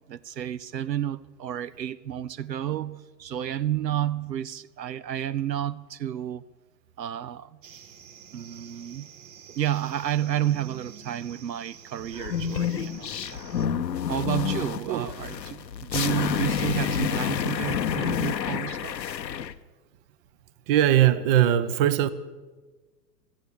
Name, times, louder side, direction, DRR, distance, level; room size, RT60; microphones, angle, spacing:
voice 1, 0.1-6.4 7.0-7.6 8.3-9.1 9.5-13.4 14.1-19.0, right 11 dB, 85° right, 0.6 m, -31 dB
sound 1, 7.6-13.7, right 8 dB, 50° right, 1.7 m, -48 dB
sound 2, 12.1-19.5, left 8 dB, 85° left, 0.8 m, -29 dB
voice 2, 20.7-22.1, right 11 dB, 35° right, 0.9 m, -20 dB
16.0 x 13.0 x 6.9 m
figure-of-eight pair, 115°, 50 cm